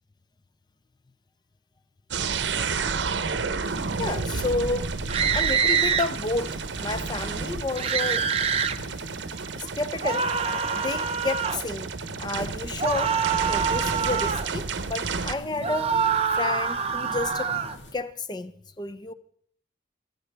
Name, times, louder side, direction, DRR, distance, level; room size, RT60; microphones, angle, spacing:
sound 1, 2.1-15.3, right 5 dB, 75° right, 0.7 m, -31 dB
sound 2, 3.6-17.9, left 1 dB, 80° left, 1.7 m, -43 dB
voice 1, 4.0-5.0 5.3-8.3 9.6-10.3 10.7-11.9 12.2-13.2 13.5-16.1 16.3-17.5 17.9-19.1, left 2 dB, 25° left, 0.5 m, -31 dB
sound 3, 5.1-6.1 7.8-8.8 10.0-11.6 12.8-14.5 15.6-17.7, right 6 dB, 30° right, 0.6 m, -25 dB
25.5 x 9.6 x 3.4 m
head